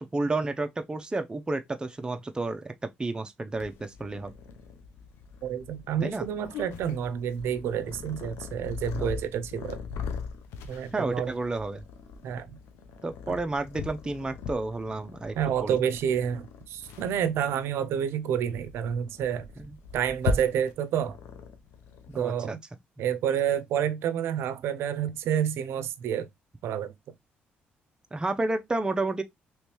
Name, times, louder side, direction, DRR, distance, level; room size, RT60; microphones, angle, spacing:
voice 1, 0.0-2.7 3.0-4.3 6.0-6.2 9.0-9.1 10.9-11.8 13.0-15.4 15.6-15.7 19.6-19.7 22.1-22.6 23.0-23.1 28.1-29.2, right 2 dB, 20° right, 0.5 m, -31 dB
Purr, 3.5-22.2, left 5 dB, 85° left, 0.6 m, -39 dB
voice 2, 5.4-9.8 10.7-11.3 12.2-12.6 15.4-19.5 19.9-21.2 22.2-22.6 23.0-26.3 26.6-26.9, right 9 dB, 75° right, 0.5 m, -29 dB
3.2 x 3.0 x 2.9 m
supercardioid pair, 65°, 4 cm